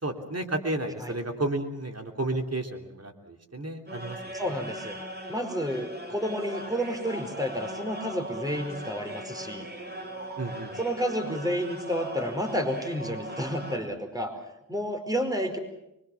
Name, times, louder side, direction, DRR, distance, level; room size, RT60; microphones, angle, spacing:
voice 1, 0.0-4.3 10.4-10.7, right 2 dB, 50° right, 4 dB, 3.4 m, -32 dB
sound 1, 3.9-13.8, right 1 dB, 30° right, 5.9 m, -39 dB
voice 2, 4.3-5.0 5.3-9.7 10.8-14.3 14.7-15.6, equal, 10° right, 6 dB, 4.9 m, -30 dB
24.5 x 22.5 x 7.2 m, 0.85 s
cardioid pair, 40°, 33 cm